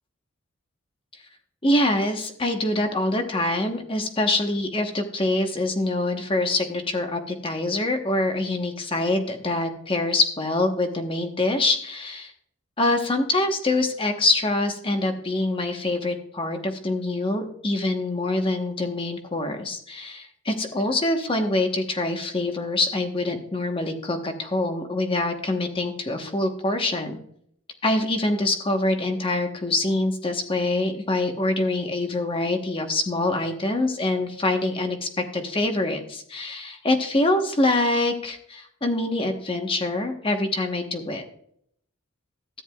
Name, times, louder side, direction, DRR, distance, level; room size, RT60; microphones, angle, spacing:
voice 1, 1.6-12.3 12.8-27.2 27.8-41.2, left 2 dB, 25° left, 5 dB, 1.1 m, -25 dB
13.5 x 9.5 x 2.3 m, 0.65 s
head